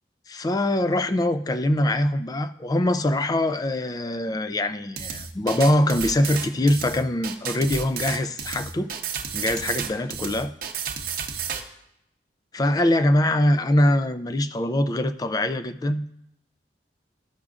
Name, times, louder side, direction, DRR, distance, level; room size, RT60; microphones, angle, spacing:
voice 1, 0.3-8.9 9.3-10.5 12.5-16.0, left 1 dB, 20° left, 11 dB, 0.3 m, -23 dB
sound 1, 5.0-11.6, right 7 dB, 50° right, 0.8 m, -32 dB
13.0 x 6.1 x 2.4 m, 0.81 s
head